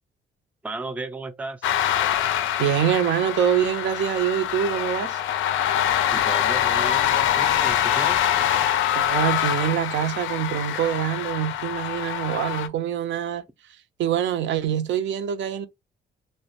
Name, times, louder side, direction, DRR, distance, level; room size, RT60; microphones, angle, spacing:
voice 1, 0.6-1.7 6.3-8.2, right 3 dB, 5° right, 0.3 m, -34 dB
sound 1, 1.6-12.7, left 11 dB, 80° left, 0.4 m, -24 dB
voice 2, 2.6-5.2 8.9-13.4 14.0-15.7, right 9 dB, 70° right, 0.4 m, -24 dB
2.3 x 2.1 x 2.7 m
cardioid pair, 90°, 20 cm